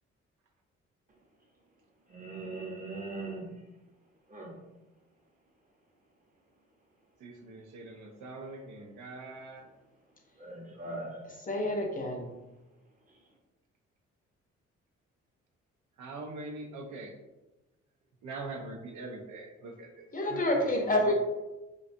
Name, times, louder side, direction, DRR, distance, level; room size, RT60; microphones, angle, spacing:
voice 1, 2.1-3.5 4.3-4.5 10.4-11.2, right 2 dB, 30° right, -1 dB, 0.8 m, -40 dB
voice 2, 7.2-9.7 16.0-17.1 18.2-21.1, right 2 dB, 80° right, 2 dB, 0.5 m, -43 dB
voice 3, 11.5-12.3 20.1-21.1, left 1 dB, 30° left, 0 dB, 0.6 m, -28 dB
2.5 x 2.2 x 2.5 m, 1.0 s
supercardioid pair, 55°, 29 cm